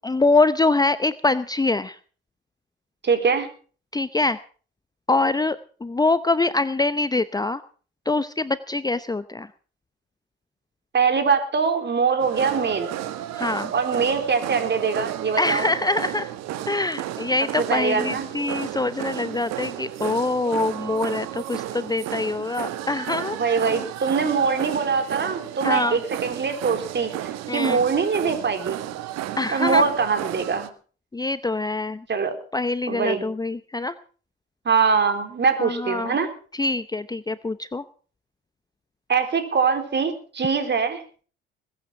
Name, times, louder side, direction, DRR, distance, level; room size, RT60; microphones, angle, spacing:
voice 1, 0.0-2.0 3.9-4.4 5.1-7.6 8.1-9.5 13.3-13.7 15.4-16.3 16.7-23.4 23.7-23.8 25.6-26.0 27.5-27.8 29.4-29.8 31.1-32.0 32.5-33.9 35.6-36.2 36.5-37.8, left 2 dB, 15° left, 14 dB, 0.8 m, -24 dB
voice 2, 3.0-3.5 10.9-12.9 13.7-15.7 17.6-18.3 23.3-27.1 27.5-28.9 29.5-30.7 32.1-32.3 32.9-33.2 34.7-36.3 39.1-41.0, right 5 dB, 40° right, 7 dB, 3.9 m, -23 dB
sound 1, 12.2-30.7, right 12 dB, 65° right, 1.6 m, -33 dB
21.0 x 9.4 x 5.8 m, 0.42 s
hypercardioid pair, 60°, 29 cm